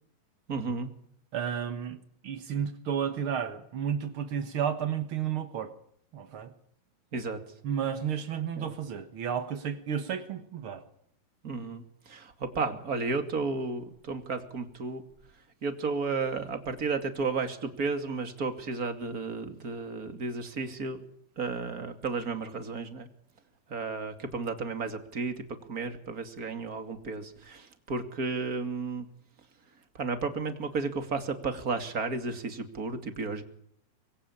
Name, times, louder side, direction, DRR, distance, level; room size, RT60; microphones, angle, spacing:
voice 1, 0.5-0.9 7.1-7.4 8.5-8.7 11.4-15.0 15.6-21.0 21.4-23.1 23.7-29.1 29.9-33.4, right 4 dB, 25° right, 7 dB, 2.2 m, -33 dB
voice 2, 1.3-5.7 6.1-6.5 7.6-10.8, right 8 dB, 75° right, 9 dB, 1.2 m, -32 dB
24.5 x 22.5 x 8.7 m, 0.68 s
omnidirectional pair, 4.6 m